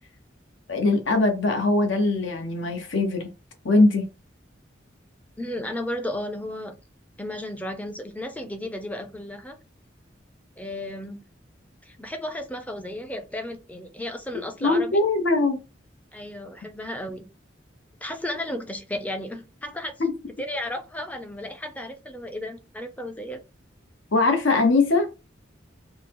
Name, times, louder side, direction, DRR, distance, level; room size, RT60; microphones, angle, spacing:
voice 1, 0.7-3.3 3.6-4.0 14.6-15.6 20.0-20.1 24.1-25.1, left 3 dB, 75° left, 0.8 m, -21 dB
voice 2, 5.4-6.7 7.2-9.6 10.6-11.2 11.8-15.0 16.1-17.3 18.0-19.9 20.4-23.4, left 1 dB, 10° left, 0.4 m, -34 dB
3.7 x 2.0 x 2.9 m
head